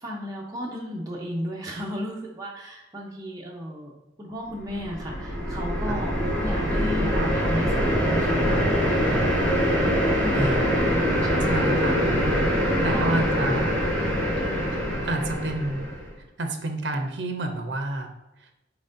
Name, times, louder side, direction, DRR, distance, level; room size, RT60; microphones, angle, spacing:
voice 1, 0.0-3.9 4.2-9.2 10.2-10.5 11.2-11.7 12.7-13.2 13.6-13.8 14.4-14.7, equal, 20° right, -3 dB, 0.7 m, -35 dB
sound 1, 4.7-16.1, equal, 10° left, 1.3 m, -24 dB
voice 2, 10.3-10.8 11.5-12.0 12.8-13.8 15.0-15.9 16.4-18.1, right 2 dB, 65° right, 5 dB, 0.6 m, -29 dB
4.3 x 4.0 x 2.6 m, 0.93 s
head